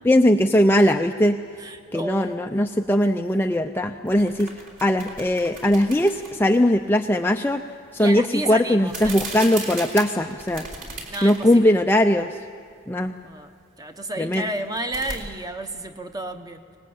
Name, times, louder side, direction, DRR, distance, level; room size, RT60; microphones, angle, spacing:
voice 1, 0.0-1.4 1.9-4.5 4.8-7.6 7.9-10.7 11.2-12.4 12.9-13.2 14.2-14.5, left 1 dB, 10° left, 4 dB, 0.5 m, -20 dB
voice 2, 1.6-2.4 8.0-9.2 11.1-11.7 13.2-16.8, right 1 dB, 15° right, 7 dB, 1.1 m, -32 dB
sound 1, 4.1-6.6 8.8-11.6 12.0-12.1 14.6-15.2, right 3 dB, 40° right, 3.6 m, -36 dB
24.0 x 19.5 x 8.7 m, 2.4 s
head